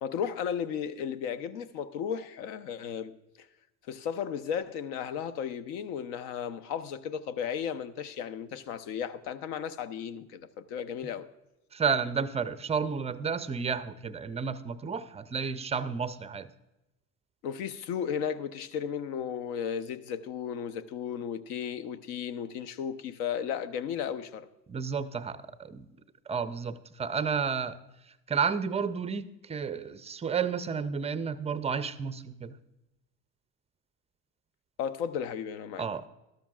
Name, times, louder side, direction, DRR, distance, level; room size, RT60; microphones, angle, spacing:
voice 1, 0.0-3.1 3.9-11.3 17.4-24.5 34.8-35.8, left 8 dB, 70° left, 0.8 m, -34 dB
voice 2, 11.7-16.5 24.7-25.9 26.3-27.8 28.0-32.6 35.8-36.0, right 6 dB, 15° right, 0.4 m, -31 dB
13.0 x 13.0 x 2.4 m
hypercardioid pair, 80°, 47 cm